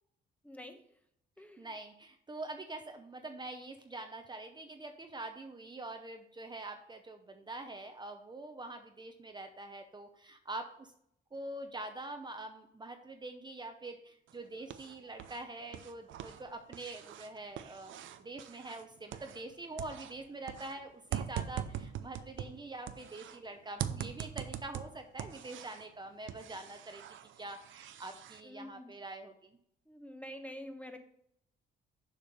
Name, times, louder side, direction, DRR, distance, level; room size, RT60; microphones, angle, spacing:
voice 1, 0.4-1.0 1.4-1.7 28.4-28.9 29.9-31.0, left 1 dB, 5° left, 6 dB, 1.0 m, -47 dB
voice 2, 1.6-10.9 11.3-17.9 18.2-27.0 27.4-29.6, right 2 dB, 20° right, 5 dB, 0.7 m, -45 dB
sound 1, 14.3-15.4 15.7-19.5 19.8-23.4 23.8-25.9 26.3-28.4, right 10 dB, 75° right, 0.6 m, -42 dB
7.1 x 5.1 x 5.3 m, 0.72 s
cardioid pair, 90°, 20 cm